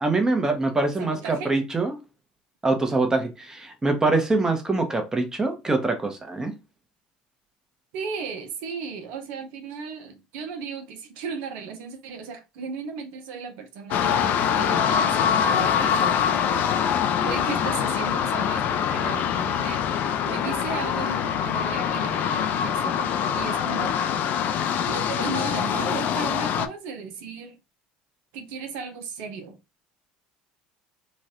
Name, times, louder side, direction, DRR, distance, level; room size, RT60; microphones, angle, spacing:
voice 1, 0.0-2.0 2.6-6.5, right 3 dB, 15° right, 0.9 m, -24 dB
voice 2, 1.0-1.5 7.9-16.2 17.2-19.9 20.3-24.0 24.9-27.6 28.3-29.6, right 5 dB, 65° right, 0.6 m, -35 dB
sound 1, 13.9-26.7, left 8 dB, 55° left, 0.4 m, -24 dB
3.0 x 2.3 x 2.8 m
hypercardioid pair, 70°, 4 cm